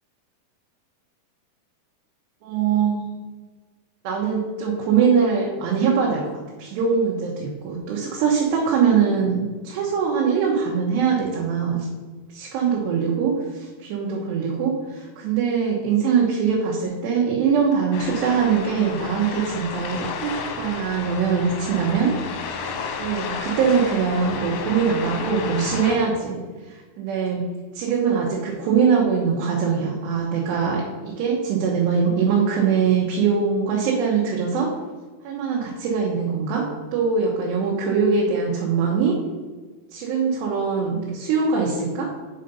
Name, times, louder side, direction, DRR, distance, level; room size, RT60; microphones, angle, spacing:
voice 1, 2.4-3.2 4.0-6.3 6.6-11.9 12.3-22.1 23.0-26.4 26.7-27.4 27.7-34.7 35.2-36.6 36.9-39.1 39.9-42.1, right 6 dB, 80° right, -3 dB, 3.1 m, -22 dB
sound 1, 17.9-26.0, left 5 dB, 90° left, 3.2 m, -32 dB
7.7 x 4.1 x 5.4 m, 1.4 s
omnidirectional pair, 4.9 m